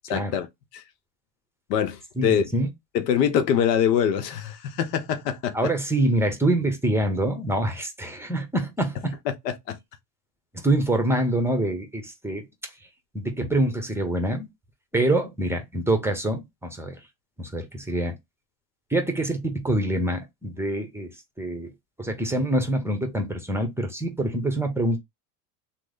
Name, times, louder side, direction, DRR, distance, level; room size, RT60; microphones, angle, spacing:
voice 1, 0.1-0.5 0.7-0.8 1.7-2.5 2.9-5.7 9.3-9.8, left 8 dB, 85° left, 0.8 m, -24 dB
voice 2, 2.2-2.7 5.5-9.2 10.6-12.5 13.1-14.5 14.9-17.0 17.4-18.1 18.9-21.7 22.0-25.0, right 1 dB, 5° right, 0.9 m, -25 dB
3.1 x 2.2 x 3.8 m
supercardioid pair, 100°, 47 cm